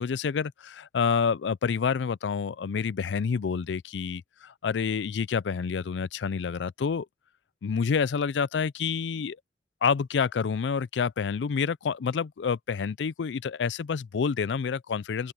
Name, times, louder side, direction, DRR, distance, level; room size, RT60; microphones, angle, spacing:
voice 1, 0.0-7.1 7.6-9.4 9.8-15.3, left 6 dB, 90° left, 0.4 m, -28 dB
open air
head